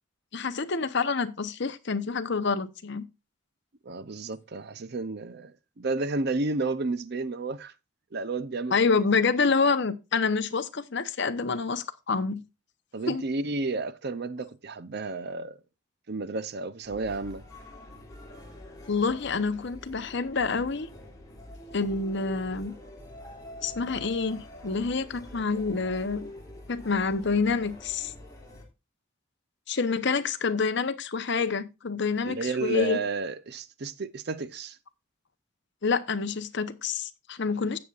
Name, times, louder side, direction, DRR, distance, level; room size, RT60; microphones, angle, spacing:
voice 1, 0.3-3.0 8.7-12.4 13.1-13.2 18.9-20.9 21.7-22.7 23.6-26.3 26.7-28.1 29.7-33.0 35.8-37.8, left 4 dB, 60° left, 0.9 m, -27 dB
voice 2, 3.8-7.7 8.1-9.0 12.9-15.6 16.1-17.4 32.2-34.8 37.6-37.7, right 3 dB, 55° right, 0.7 m, -32 dB
sound 1, 16.8-28.6, left 1 dB, 20° left, 2.9 m, -45 dB
16.5 x 6.9 x 2.5 m
head